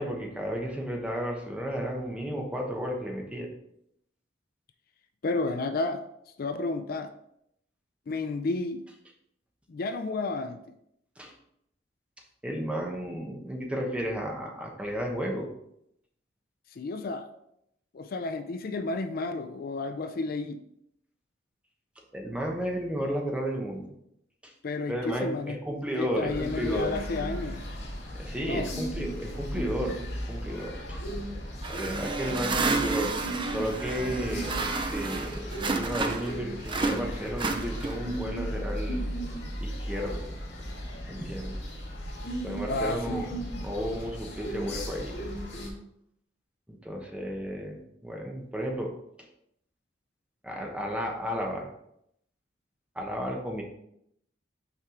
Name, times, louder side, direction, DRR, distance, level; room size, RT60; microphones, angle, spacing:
voice 1, 0.0-3.5 11.2-11.3 12.4-15.5 22.1-23.9 24.4-24.5 24.9-27.0 28.1-31.0 31.7-33.1 33.5-39.0 39.6-40.3 41.1-41.6 42.4-45.2 46.7-48.9 50.4-51.7 52.9-53.6, equal, 5° right, 0 dB, 0.9 m, -33 dB
voice 2, 5.2-6.0 6.4-7.1 8.1-8.8 9.7-10.6 16.7-17.3 17.9-20.6 24.6-25.6 26.0-27.6 28.5-28.7 42.7-43.3, left 3 dB, 55° left, 8 dB, 0.4 m, -31 dB
sound 1, 26.3-45.7, equal, 70° left, 1.9 m, -36 dB
sound 2, 31.6-36.4 36.7-38.1, right 3 dB, 25° right, 0.5 m, -31 dB
5.7 x 4.6 x 3.7 m, 0.76 s
head